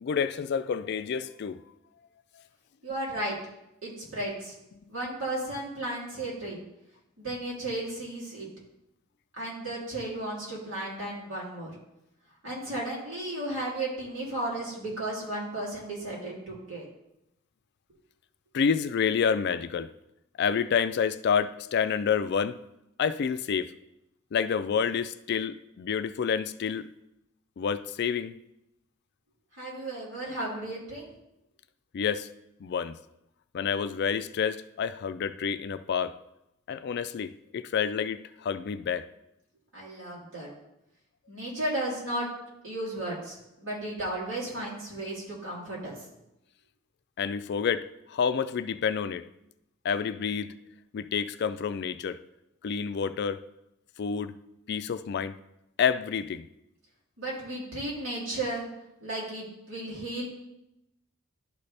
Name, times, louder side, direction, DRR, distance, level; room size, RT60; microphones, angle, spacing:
voice 1, 0.0-1.6 18.5-19.9 20.4-22.5 23.0-23.7 24.3-26.9 27.6-28.3 31.9-32.3 32.6-33.0 33.5-36.1 36.7-39.1 47.2-49.2 49.8-50.5 50.9-52.2 52.6-53.4 54.0-54.3 54.7-55.3 55.8-56.5, left 6 dB, 55° left, 12 dB, 0.3 m, -28 dB
voice 2, 2.8-3.4 3.8-4.5 4.9-6.6 7.2-8.5 9.4-11.7 12.4-16.8 29.6-31.1 39.7-40.5 41.3-42.3 42.6-46.0 57.2-58.7 59.0-60.3, right 1 dB, 75° right, -5 dB, 3.1 m, -34 dB
11.5 x 4.1 x 3.3 m, 0.85 s
head